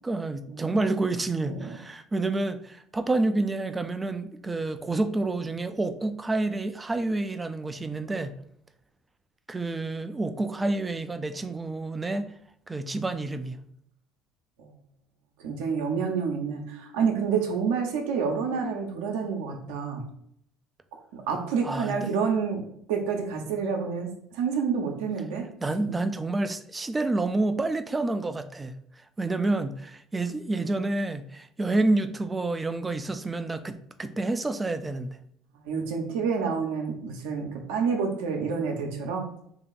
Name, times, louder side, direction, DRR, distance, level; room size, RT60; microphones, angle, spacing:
voice 1, 0.0-8.4 9.5-12.3 12.7-13.6 21.6-22.1 25.6-28.8 29.2-35.2, right 2 dB, 20° right, 10 dB, 0.4 m, -28 dB
voice 2, 15.4-20.0 21.1-22.6 22.9-25.4 35.6-39.3, right 6 dB, 80° right, 2 dB, 0.8 m, -28 dB
3.0 x 2.9 x 4.1 m, 0.69 s
hypercardioid pair, 75°, 0 cm